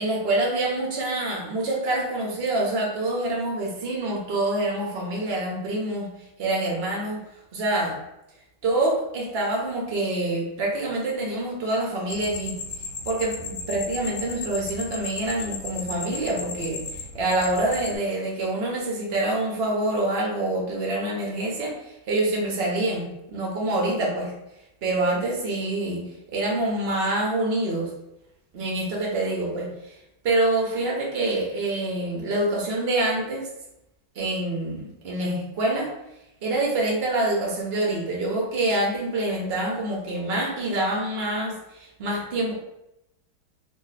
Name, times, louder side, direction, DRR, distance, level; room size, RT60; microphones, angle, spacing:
voice 1, 0.0-6.1 6.4-7.2 7.5-7.9 8.6-12.5 13.0-16.8 17.1-24.3 24.8-26.0 26.3-27.9 28.5-29.9 30.2-33.5 34.2-35.9 36.4-42.5, right 2 dB, 75° right, -2 dB, 0.5 m, -26 dB
sound 1, 12.1-17.9, left 4 dB, 60° left, 1.0 m, -35 dB
3.6 x 2.1 x 4.0 m, 0.88 s
omnidirectional pair, 2.2 m